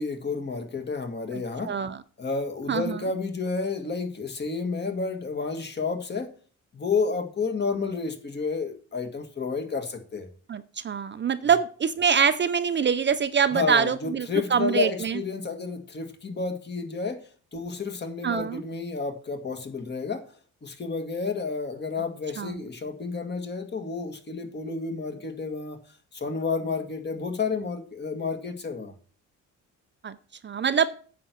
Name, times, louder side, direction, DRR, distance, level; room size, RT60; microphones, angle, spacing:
voice 1, 0.0-1.7 2.2-6.3 6.7-10.3 13.5-17.2 17.5-20.2 20.6-25.8 26.1-28.9, left 4 dB, 35° left, 2.0 m, -30 dB
voice 2, 1.7-2.0 2.7-3.0 10.5-15.2 18.2-18.6 22.4-22.5 30.0-30.1 30.4-30.9, right 7 dB, 35° right, 0.6 m, -24 dB
9.5 x 6.9 x 6.2 m
cardioid pair, 105°, 32 cm